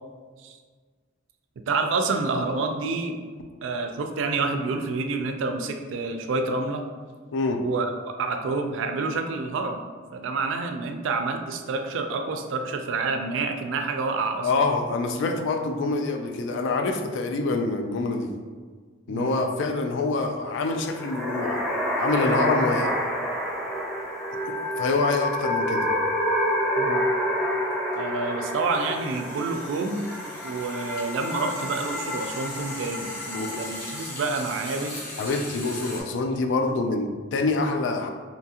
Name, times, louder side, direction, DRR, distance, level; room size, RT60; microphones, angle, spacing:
voice 1, 1.7-3.2 3.6-6.8 7.6-9.9 10.1-14.5 19.1-19.4 26.8-27.0 28.0-30.1 30.4-35.0, right 3 dB, 75° right, 5 dB, 0.3 m, -28 dB
voice 2, 7.3-7.7 14.4-18.3 19.1-21.6 22.0-23.0 24.8-25.9 33.3-33.6 35.2-38.1, left 3 dB, 70° left, 5 dB, 0.3 m, -26 dB
sound 1, 20.8-34.2, equal, ahead, 0.4 m, -28 dB
sound 2, 27.4-27.5 27.7-36.0, left 1 dB, 50° left, 0.8 m, -39 dB
2.7 x 2.4 x 2.8 m, 1.5 s
head